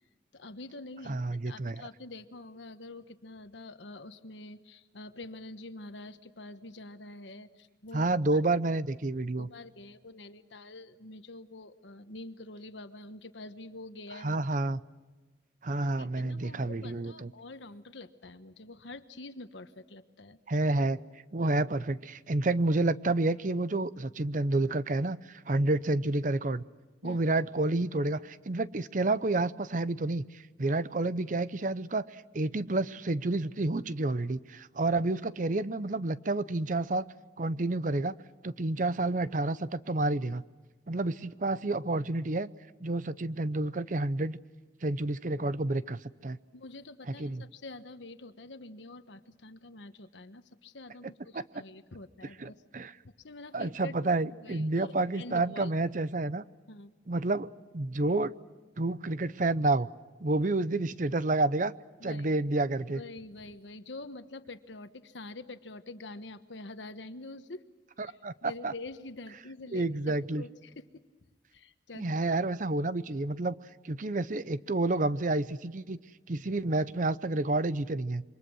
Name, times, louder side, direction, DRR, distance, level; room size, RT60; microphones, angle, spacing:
voice 1, 0.3-1.2 1.4-8.4 9.1-14.4 16.0-20.4 27.0-27.2 46.5-52.6 53.0-53.9 54.3-55.7 56.7-56.9 62.0-62.4 62.9-67.6 68.0-70.9 71.5-72.1, left 2 dB, 85° left, 10 dB, 1.3 m, -46 dB
voice 2, 1.1-1.9 7.9-9.5 14.2-14.8 15.6-17.3 20.5-21.0 21.3-26.6 27.0-37.0 37.4-38.1 38.4-40.4 40.9-42.5 42.8-44.4 44.8-46.4 47.2-47.4 51.3-51.6 52.4-52.9 53.5-56.4 57.1-58.3 58.8-59.9 60.2-61.7 62.0-63.0 68.0-68.7 69.7-70.4 71.9-73.6 73.8-76.0 76.3-78.2, right 2 dB, 45° right, 15 dB, 0.7 m, -29 dB
27.5 x 24.5 x 6.3 m, 1.3 s
head